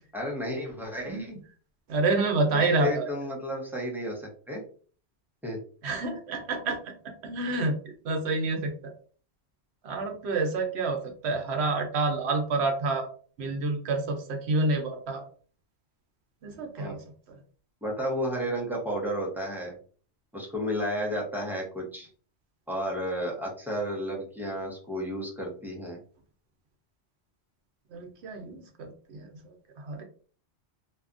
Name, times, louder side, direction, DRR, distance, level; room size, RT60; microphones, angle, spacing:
voice 1, 0.1-1.4 2.5-4.6 5.4-5.6 16.8-16.9 17.8-19.7 20.3-22.1 22.7-26.0, equal, ahead, -3 dB, 0.6 m, -32 dB
voice 2, 1.9-3.1 5.8-6.9 7.2-8.9 9.8-13.1 13.4-15.2 16.4-17.0 27.9-30.0, right 3 dB, 70° right, 4 dB, 0.9 m, -28 dB
2.7 x 2.4 x 2.4 m, 0.42 s
omnidirectional pair, 1.2 m